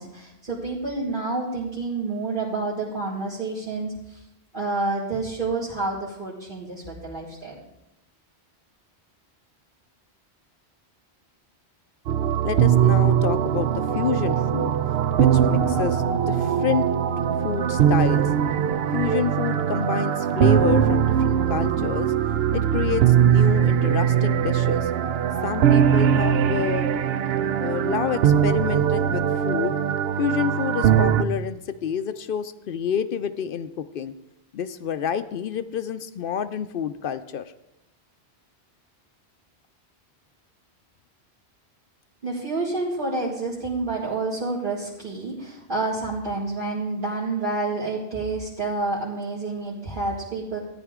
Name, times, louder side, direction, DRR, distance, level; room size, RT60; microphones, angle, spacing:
voice 1, 0.0-4.2 4.5-7.6 42.2-50.6, right 3 dB, 50° right, -6 dB, 2.1 m, -29 dB
sound 1, 12.1-31.2, right 9 dB, 70° right, 0.8 m, -21 dB
voice 2, 12.4-14.7 15.2-16.9 17.4-18.3 18.9-22.1 22.5-24.9 25.4-26.9 27.6-29.8 30.2-34.1 34.5-37.4, left 8 dB, 60° left, 12 dB, 0.7 m, -28 dB
13.5 x 9.8 x 3.6 m, 0.92 s
omnidirectional pair, 1.1 m